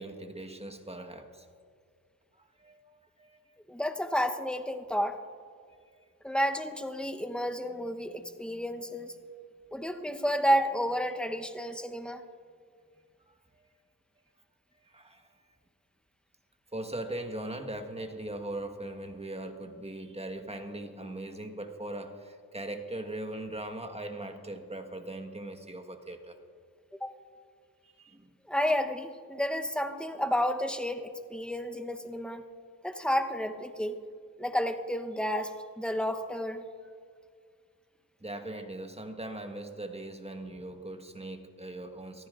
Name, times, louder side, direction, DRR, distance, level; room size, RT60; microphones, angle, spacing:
voice 1, 0.0-1.5 2.4-2.8 3.2-3.4 5.9-6.0 13.3-13.7 14.8-15.4 16.7-26.4 27.8-28.3 38.2-42.3, right 1 dB, 15° right, 5 dB, 1.4 m, -40 dB
voice 2, 3.7-5.2 6.2-9.2 9.7-12.2 27.0-27.1 28.5-32.4 32.8-34.0 34.4-36.6, equal, 5° left, 6 dB, 0.9 m, -31 dB
24.0 x 14.5 x 2.5 m, 2.1 s
cardioid pair, 60°, 37 cm